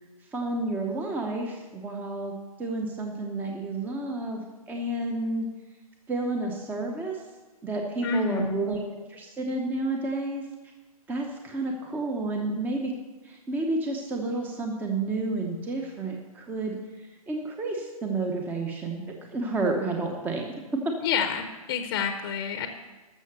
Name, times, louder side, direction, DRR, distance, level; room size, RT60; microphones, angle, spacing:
voice 1, 0.3-4.4 4.7-5.5 6.1-7.2 7.6-10.4 11.1-12.9 13.2-16.8 17.3-19.0 19.3-20.5, right 2 dB, 10° right, 2 dB, 0.9 m, -30 dB
voice 2, 8.0-8.8 21.0-22.7, left 5 dB, 40° left, 7 dB, 0.9 m, -28 dB
13.5 x 6.5 x 6.7 m, 1.2 s
hypercardioid pair, 135°, 19 cm